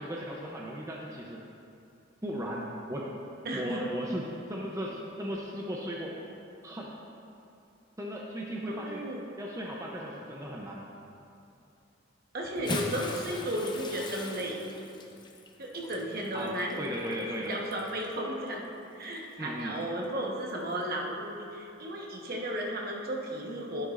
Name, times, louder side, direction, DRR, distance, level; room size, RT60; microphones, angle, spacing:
voice 1, 0.0-1.4 2.2-3.2 3.5-6.2 6.6-6.9 8.0-9.1 9.4-10.8 16.3-17.6 19.4-19.7, equal, 15° right, -2 dB, 0.6 m, -36 dB
voice 2, 3.4-3.9 8.7-9.2 12.3-14.6 15.6-16.8 17.5-18.7 18.9-23.9, right 1 dB, 50° right, -1 dB, 1.2 m, -34 dB
Bathtub (filling or washing) / Splash splatter, 12.4-18.1 19.0-19.2 20.6-20.7, left 2 dB, 25° left, 0.6 m, -40 dB
11.5 x 9.5 x 2.5 m, 2.7 s
head